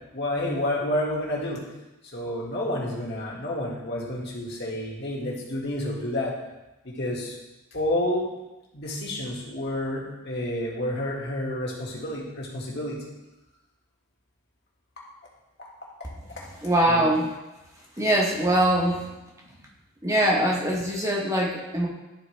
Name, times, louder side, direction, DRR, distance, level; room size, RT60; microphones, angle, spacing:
voice 1, 0.1-1.6 2.1-6.3 6.8-7.4 7.7-8.3 8.7-13.0 15.6-15.7 16.4-16.5 16.9-17.1, left 1 dB, 50° left, -4 dB, 1.8 m, -29 dB
voice 2, 16.6-17.3 18.0-19.1 20.0-21.9, right 1 dB, 15° right, -2 dB, 1.0 m, -22 dB
12.0 x 4.4 x 3.3 m, 1.0 s
head